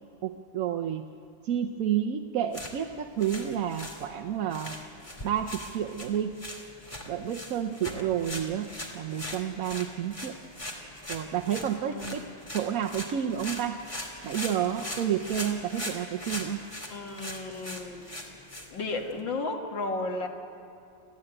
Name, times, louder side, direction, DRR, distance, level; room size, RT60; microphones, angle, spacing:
voice 1, 0.2-1.1 1.4-4.8 5.2-6.3 7.1-8.7 8.9-10.4 11.1-12.3 12.5-13.8 14.2-16.6, right 9 dB, 60° right, 5 dB, 0.9 m, -30 dB
sound 1, 2.4-19.2, left 1 dB, 15° left, 2.5 m, -41 dB
voice 2, 7.9-8.5 11.8-12.3 16.9-18.0 18.7-20.3, left 3 dB, 70° left, 2 dB, 2.5 m, -34 dB
27.5 x 15.0 x 8.9 m, 2.6 s
omnidirectional pair, 2.1 m